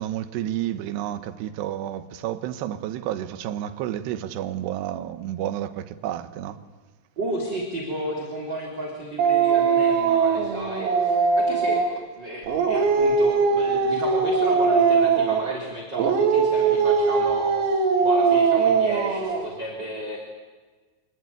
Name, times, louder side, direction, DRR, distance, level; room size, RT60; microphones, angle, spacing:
voice 1, 0.0-6.6, right 12 dB, 70° right, 2.8 m, -30 dB
voice 2, 7.2-11.9 12.1-20.2, right 1 dB, 25° right, 3.3 m, -33 dB
Dog, 9.2-12.0 12.4-15.5 16.0-19.5, right 5 dB, 90° right, 5.0 m, -21 dB
25.0 x 20.5 x 9.4 m
omnidirectional pair, 5.9 m